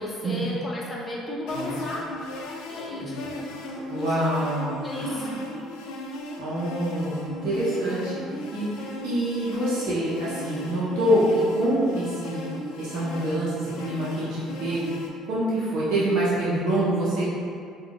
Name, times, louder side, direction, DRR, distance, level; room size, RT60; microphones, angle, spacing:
voice 1, 0.0-2.0 2.7-5.3, left 1 dB, 25° left, -4 dB, 0.7 m, -35 dB
sound 1, 1.5-15.1, left 1 dB, 80° left, 0.3 m, -37 dB
voice 2, 3.9-5.4 6.4-8.7 9.0-12.4 12.8-14.9 15.2-17.3, right 1 dB, 70° right, -9 dB, 0.7 m, -26 dB
3.6 x 2.3 x 2.3 m, 2.3 s
supercardioid pair, 85°, 0 cm